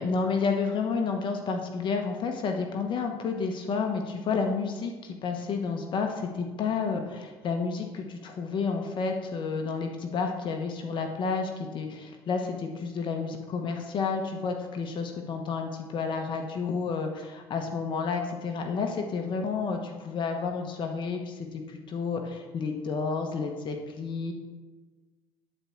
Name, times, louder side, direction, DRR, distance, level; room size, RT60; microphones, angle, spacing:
voice 1, 0.0-24.3, left 5 dB, 55° left, 3 dB, 1.2 m, -30 dB
11.0 x 4.6 x 7.2 m, 1.3 s
cardioid pair, 95°, 10 cm